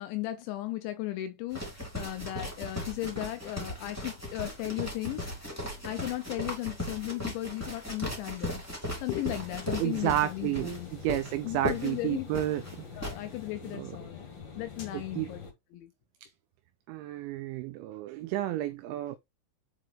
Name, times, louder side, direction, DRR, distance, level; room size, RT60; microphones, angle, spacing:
voice 1, 0.0-5.3 5.8-8.6 9.0-10.9 11.4-12.3 13.0-14.2 14.6-15.4 15.7-15.9, left 15 dB, 80° left, 2.8 m, -36 dB
sound 1, 1.5-13.2, left 1 dB, 5° left, 2.0 m, -37 dB
sound 2, 9.3-15.5, left 6 dB, 40° left, 2.1 m, -45 dB
voice 2, 9.8-12.6 13.7-13.9 14.9-15.3 16.2-16.3 16.9-19.2, right 13 dB, 90° right, 2.6 m, -31 dB
7.8 x 5.0 x 3.0 m
omnidirectional pair, 6.0 m